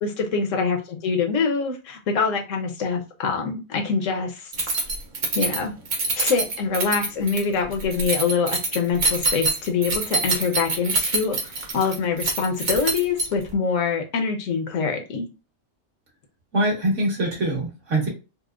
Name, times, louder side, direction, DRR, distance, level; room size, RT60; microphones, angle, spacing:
voice 1, 0.0-4.7 5.3-5.7 6.2-15.3, left 5 dB, 75° left, 3 dB, 1.1 m, -25 dB
Keys jangling, 4.5-13.5, right 3 dB, 45° right, 0.7 m, -25 dB
voice 2, 16.5-18.1, right 1 dB, 65° right, -4 dB, 1.9 m, -23 dB
4.2 x 2.1 x 2.4 m, 0.29 s
omnidirectional pair, 1.4 m